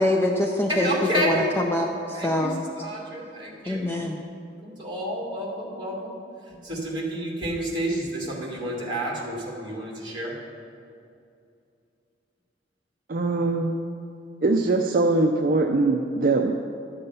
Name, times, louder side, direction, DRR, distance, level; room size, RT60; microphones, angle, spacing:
voice 1, 0.0-0.9 1.1-2.6 3.7-4.2, left 1 dB, 10° left, 2 dB, 0.5 m, -24 dB
voice 2, 0.7-1.5 2.1-3.9 4.6-6.2 6.5-10.4 13.3-13.8, equal, 25° right, -3 dB, 2.0 m, -30 dB
voice 3, 13.1-13.7 14.4-16.5, right 3 dB, 50° right, 4 dB, 0.5 m, -22 dB
11.5 x 7.0 x 5.5 m, 2.5 s
head